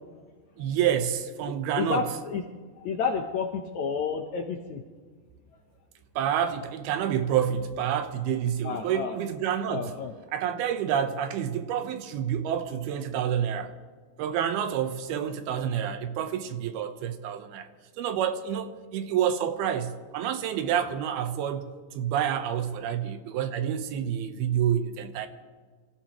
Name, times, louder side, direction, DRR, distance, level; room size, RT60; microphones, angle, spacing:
voice 1, 0.6-2.1 6.2-9.9 10.3-13.7 14.2-17.7 18.0-25.3, right 9 dB, 85° right, 2.9 m, -28 dB
voice 2, 1.8-2.4 2.8-4.8 8.6-9.2 9.7-10.1, left 5 dB, 70° left, 1.8 m, -30 dB
27.0 x 15.5 x 3.0 m
omnidirectional pair, 4.4 m